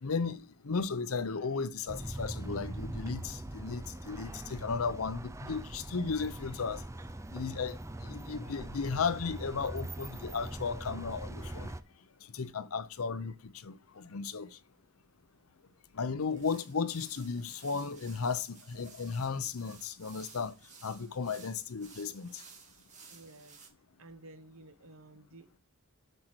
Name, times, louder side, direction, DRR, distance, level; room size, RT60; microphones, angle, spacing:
voice 1, 0.0-6.8 7.3-11.7 12.3-13.3 13.6-14.5 16.0-20.5 20.8-22.3, left 5 dB, 85° left, 0.7 m, -35 dB
sound 1, 1.9-11.8, right 1 dB, 15° right, 0.5 m, -42 dB
sound 2, 16.2-23.7, right 5 dB, 35° right, 2.3 m, -55 dB
voice 2, 23.1-23.6 24.0-25.6, right 2 dB, 75° right, 1.1 m, -53 dB
7.7 x 6.5 x 4.5 m
head